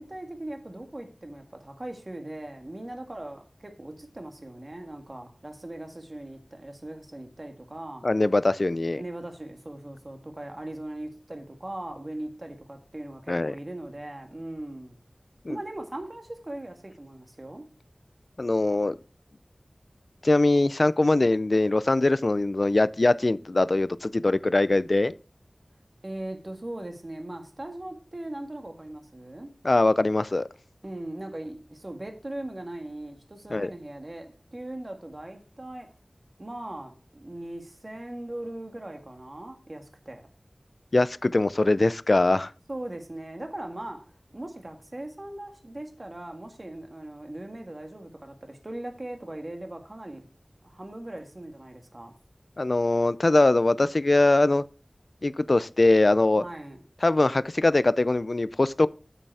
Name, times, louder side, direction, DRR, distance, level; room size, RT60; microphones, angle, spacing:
voice 1, 0.0-8.1 9.0-15.0 15.5-17.7 26.0-29.5 30.8-35.9 36.4-40.3 42.7-50.3 50.6-52.1 56.4-56.8, right 1 dB, 45° right, 1.9 m, -39 dB
voice 2, 8.0-9.0 13.3-13.5 15.5-15.6 18.4-18.9 20.2-25.1 29.6-30.5 33.5-33.7 40.9-42.5 52.6-54.6 55.2-56.4 57.0-58.9, left 2 dB, 60° left, 0.4 m, -22 dB
9.1 x 6.7 x 4.8 m
wide cardioid pair, 55°, 0 cm